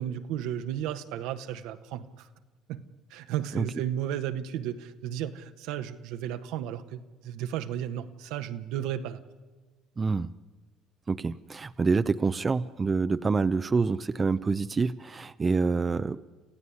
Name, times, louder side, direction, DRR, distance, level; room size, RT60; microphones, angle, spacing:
voice 1, 0.0-2.3 2.7-2.8 3.1-9.2, right 10 dB, 75° right, 8 dB, 1.3 m, -34 dB
voice 2, 10.0-10.3 11.1-16.2, right 4 dB, 25° right, 11 dB, 0.7 m, -27 dB
27.5 x 15.5 x 9.7 m, 1.3 s
supercardioid pair, 80°, 0 cm